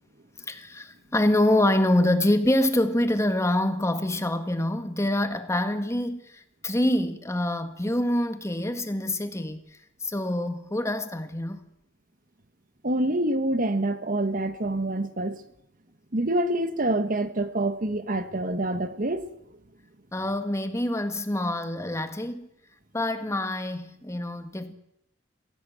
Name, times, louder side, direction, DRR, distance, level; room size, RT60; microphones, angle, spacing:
voice 1, 0.5-9.6 10.0-11.6 20.1-22.5 22.9-24.7, left 1 dB, 15° left, 1.7 m, -26 dB
voice 2, 12.8-15.4 16.1-19.3, right 1 dB, 45° right, 1.4 m, -26 dB
22.5 x 16.5 x 8.4 m
head